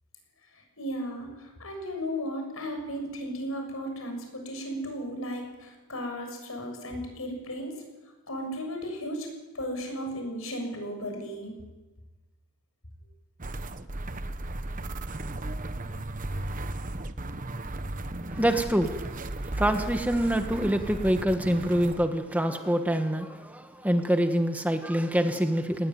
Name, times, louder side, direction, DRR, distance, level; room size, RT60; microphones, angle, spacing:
voice 1, 0.5-7.7 8.3-9.3 9.5-11.5, equal, 80° left, 4 dB, 7.1 m, -35 dB
sound 1, 13.4-22.1, right 2 dB, 40° right, 1.1 m, -35 dB
voice 2, 18.3-19.1 19.4-25.9, equal, 5° right, 6 dB, 1.3 m, -26 dB
19.5 x 18.5 x 9.5 m, 1.2 s
head